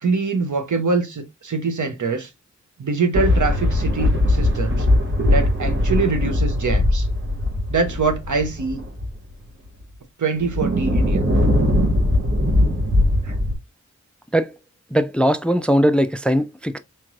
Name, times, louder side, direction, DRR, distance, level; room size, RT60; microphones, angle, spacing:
voice 1, 0.0-2.3 2.8-4.9 5.3-7.1 7.7-8.8 10.2-11.2 13.2-13.3, right 4 dB, 80° right, 0.8 m, -23 dB
sound 1, 3.1-9.3 9.8-9.9 10.4-13.5, left 1 dB, 40° right, 1.1 m, -20 dB
voice 2, 14.9-16.8, equal, 5° left, 0.3 m, -19 dB
4.3 x 3.1 x 2.5 m
wide cardioid pair, 65°, 30 cm